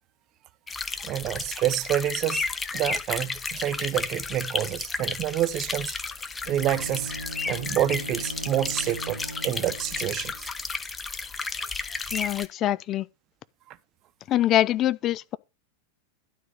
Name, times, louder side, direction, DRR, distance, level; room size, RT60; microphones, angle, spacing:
sound 1, 0.7-12.5, left 4 dB, 15° left, 1.0 m, -33 dB
voice 1, 1.0-2.5 2.7-5.9 6.5-7.1 7.5-10.5 13.7-13.8, right 12 dB, 35° right, 0.9 m, -28 dB
Bowed string instrument, 6.4-10.5, right 1 dB, 85° right, 1.5 m, -39 dB
voice 2, 12.1-13.1 14.3-15.4, left 13 dB, 35° left, 0.5 m, -24 dB
12.0 x 5.1 x 6.5 m
figure-of-eight pair, 90°, 0 cm